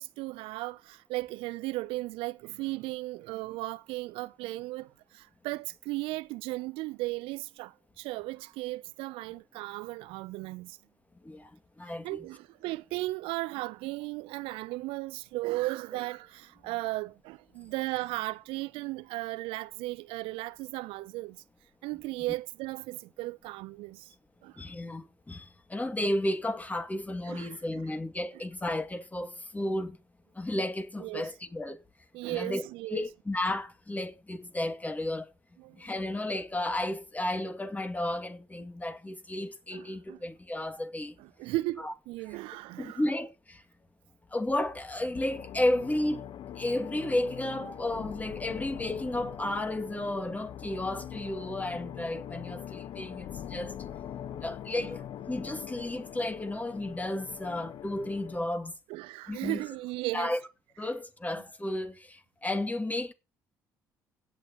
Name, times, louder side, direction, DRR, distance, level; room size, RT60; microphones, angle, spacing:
voice 1, 0.0-10.8 12.0-21.4 21.8-24.1 24.4-24.6 27.3-27.8 31.0-31.3 32.1-33.0 35.6-35.8 39.7-40.2 41.2-43.0 54.8-54.9 58.9-60.3, right 20 dB, 65° right, 0.5 m, -36 dB
voice 2, 11.2-12.2 24.6-30.0 30.3-31.8 32.3-32.6 32.9-35.3 35.7-41.2 41.8-41.9 42.8-43.6 44.3-46.3 46.6-53.8 54.4-55.0 55.3-58.7 59.3-59.7 60.1-60.4 60.8-63.1, left 1 dB, 15° left, 2.4 m, -33 dB
sound 1, 45.1-58.5, left 10 dB, 55° left, 1.1 m, -42 dB
16.5 x 9.3 x 3.0 m
hypercardioid pair, 55°, 10 cm